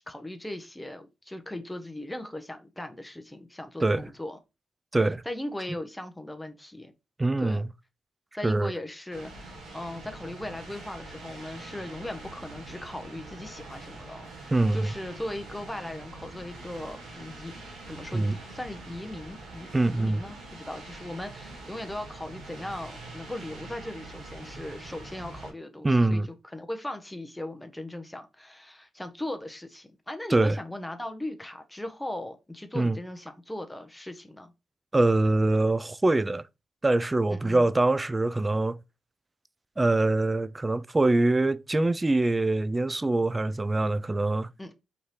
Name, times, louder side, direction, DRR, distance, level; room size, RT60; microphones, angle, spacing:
voice 1, 0.0-4.4 5.2-6.9 7.4-7.6 8.3-17.6 17.9-34.5 37.3-37.7 44.6-44.7, left 1 dB, 10° left, 0.6 m, -38 dB
voice 2, 4.9-5.2 7.2-7.7 8.4-8.7 14.5-14.9 18.1-18.4 19.7-20.2 25.8-26.3 30.3-30.6 32.7-33.0 34.9-36.4 36.8-38.8 39.8-44.5, right 2 dB, 20° right, 0.3 m, -24 dB
sound 1, 9.1-25.5, right 2 dB, 85° right, 1.8 m, -44 dB
3.9 x 2.7 x 3.2 m
supercardioid pair, 55°, 0 cm